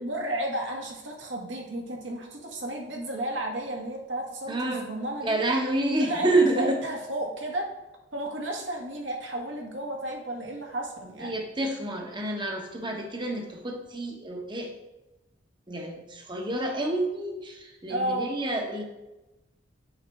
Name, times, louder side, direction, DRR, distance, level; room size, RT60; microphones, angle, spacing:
voice 1, 0.0-5.4 6.0-7.7 8.1-11.4 17.9-18.3, right 1 dB, 65° right, 0 dB, 1.7 m, -33 dB
voice 2, 4.5-4.9 5.2-6.8 11.2-14.7 15.7-18.8, right 2 dB, 25° right, 2 dB, 1.1 m, -28 dB
9.0 x 6.4 x 3.6 m, 1.0 s
head